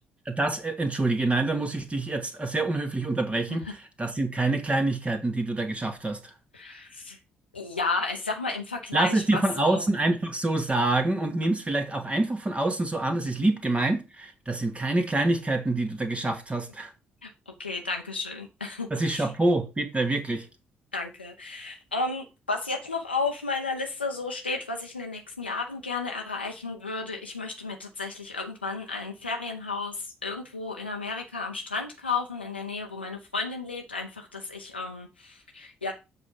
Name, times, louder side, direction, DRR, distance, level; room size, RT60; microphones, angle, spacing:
voice 1, 0.3-6.3 8.9-16.9 18.9-20.5, right 2 dB, 20° right, 1.6 m, -26 dB
voice 2, 6.5-7.2 7.5-9.8 17.2-19.3 20.9-35.9, left 3 dB, 90° left, 0.7 m, -33 dB
7.3 x 4.4 x 5.3 m
figure-of-eight pair, 45°, 6 cm